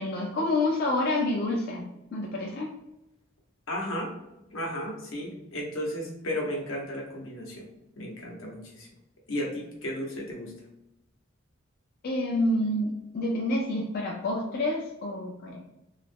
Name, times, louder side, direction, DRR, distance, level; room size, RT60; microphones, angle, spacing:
voice 1, 0.0-2.7 12.0-15.6, left 1 dB, 50° left, -1 dB, 0.3 m, -28 dB
voice 2, 3.7-4.1 4.5-7.7 8.0-8.9 9.3-10.5, equal, 80° left, -1 dB, 0.8 m, -34 dB
2.4 x 2.0 x 3.3 m, 0.90 s
head